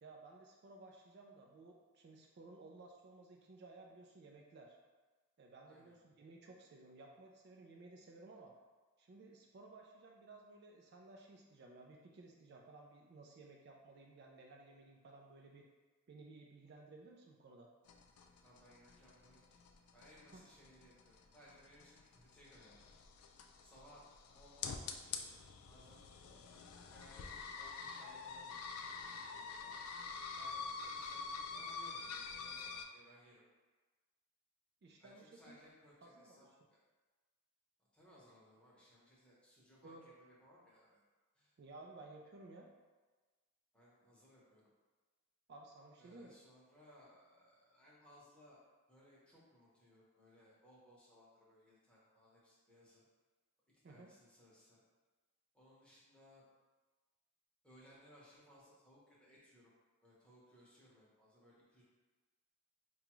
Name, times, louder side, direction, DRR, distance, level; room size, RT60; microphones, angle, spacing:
voice 1, 0.0-4.8 5.4-8.5 9.0-15.6 16.1-17.7 20.2-20.4 34.8-35.6 36.0-36.5 39.8-40.1 41.6-42.7 45.5-46.3 53.8-54.1, right 2 dB, 50° right, 0 dB, 0.3 m, -57 dB
sound 1, 17.9-32.8, left 5 dB, 80° left, 0.4 m, -47 dB
voice 2, 18.4-19.4 19.9-22.9 23.6-25.3 25.7-26.1 26.5-29.7 30.4-33.4 35.0-36.8 37.9-41.0 41.3-41.5 43.7-44.6 46.0-53.0 53.9-54.8 55.5-56.4 57.6-59.7 60.0-61.8, equal, 5° left, -7 dB, 0.8 m, -64 dB
4.9 x 2.3 x 3.0 m, 1.3 s
head